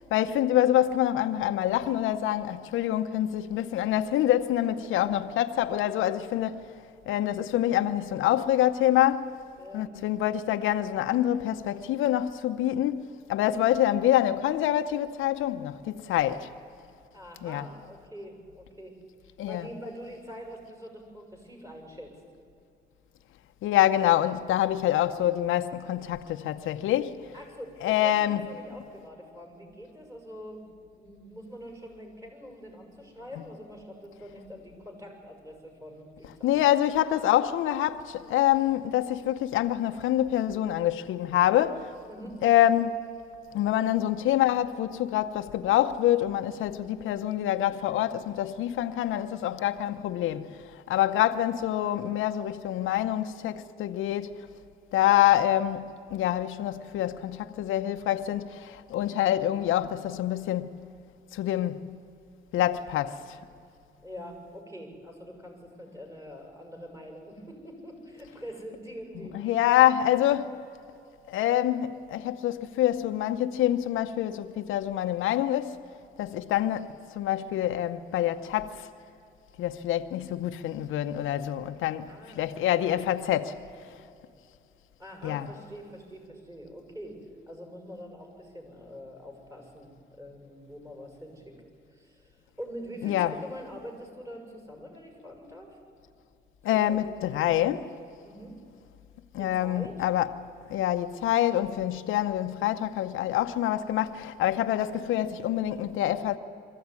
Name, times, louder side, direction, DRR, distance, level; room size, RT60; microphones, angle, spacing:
voice 1, 0.1-6.6 7.1-9.4 9.7-16.5 17.4-17.7 19.4-19.6 23.6-27.2 27.8-28.4 36.4-41.9 42.4-43.0 43.5-54.3 54.9-55.8 56.1-60.7 61.3-61.8 62.5-63.4 69.3-70.5 71.3-75.8 76.2-78.9 79.6-82.1 82.3-83.6 85.2-85.5 93.0-93.3 96.6-97.8 99.3-100.3 100.7-106.4, left 12 dB, 85° left, 0.9 m, -26 dB
voice 2, 9.6-9.9 17.1-19.0 19.4-22.1 27.3-36.6 42.1-42.4 64.0-69.9 82.1-82.9 85.0-87.2 87.5-89.9 90.2-91.5 91.9-95.8 96.7-97.7 98.2-98.5 99.4-99.9, equal, 15° right, 6.8 m, -44 dB
23.0 x 15.0 x 9.7 m
cardioid pair, 90°, 20 cm